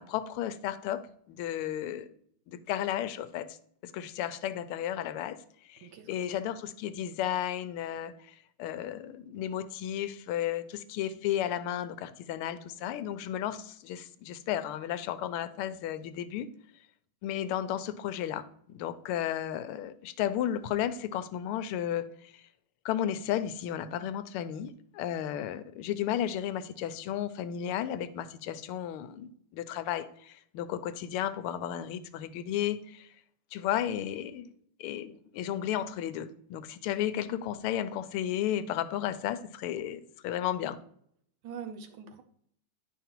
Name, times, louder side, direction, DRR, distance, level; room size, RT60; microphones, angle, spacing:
voice 1, 0.0-2.1 2.5-3.6 3.8-16.5 17.2-22.5 22.8-33.1 33.5-34.5 34.8-40.8, left 11 dB, 85° left, 1.5 m, -33 dB
voice 2, 5.8-6.4 36.9-37.1 41.4-42.2, right 6 dB, 70° right, 1.4 m, -44 dB
10.0 x 5.4 x 2.9 m
omnidirectional pair, 2.4 m